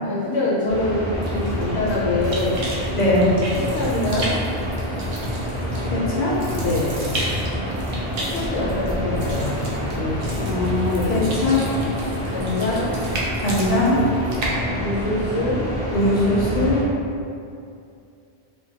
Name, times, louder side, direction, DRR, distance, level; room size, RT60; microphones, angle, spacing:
voice 1, 0.0-2.6 3.5-4.4 6.5-7.0 8.2-9.6 9.9-10.4 10.9-11.3 12.2-12.9 14.8-15.6, left 2 dB, 80° left, -9 dB, 0.9 m, -25 dB
sound 1, 0.7-16.8, equal, 10° right, 0.5 m, -27 dB
sound 2, 1.2-16.1, right 1 dB, 65° right, 0.7 m, -34 dB
voice 2, 2.9-3.3 5.9-6.3 10.4-11.6 13.4-14.0 15.9-16.8, left 1 dB, 55° left, -7 dB, 0.5 m, -20 dB
2.2 x 2.2 x 2.7 m, 2.5 s
omnidirectional pair, 1.1 m